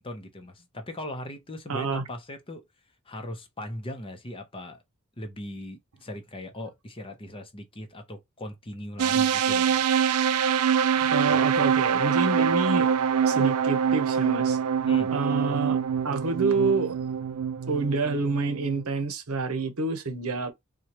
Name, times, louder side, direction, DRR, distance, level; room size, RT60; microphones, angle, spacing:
voice 1, 0.0-2.6 3.1-4.8 5.2-9.8 14.8-15.1, left 1 dB, 25° left, 0.8 m, -39 dB
voice 2, 1.7-2.0 11.0-12.9 13.3-14.6 15.1-15.8 16.0-17.0 17.7-20.5, right 3 dB, 70° right, 0.9 m, -27 dB
sound 1, 9.0-18.8, right 7 dB, 85° right, 0.4 m, -24 dB
4.5 x 2.4 x 2.8 m
head